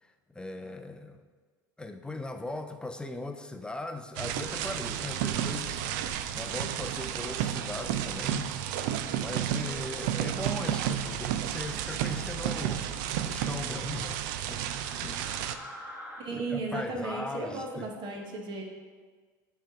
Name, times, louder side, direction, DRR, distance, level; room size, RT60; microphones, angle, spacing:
voice 1, 0.0-1.2 1.8-5.8 6.3-8.6 9.1-12.9 13.2-14.6 15.0-15.2 16.3-17.9, left 2 dB, 10° left, 7 dB, 0.6 m, -39 dB
sound 1, 4.2-15.6, right 10 dB, 65° right, 0.4 m, -32 dB
sound 2, 4.6-13.4, right 2 dB, 85° right, 1.1 m, -53 dB
sound 3, 4.9-5.5 6.2-6.5 7.3-7.8 8.7-9.1 9.5-10.1 10.5-10.9 11.9-12.3 12.7-13.6 14.5-16.2, equal, 10° right, 1.3 m, -49 dB
voice 2, 16.2-18.6, right 3 dB, 50° right, 2 dB, 1.2 m, -35 dB
8.8 x 3.3 x 5.0 m, 1.5 s
hypercardioid pair, 75°, 11 cm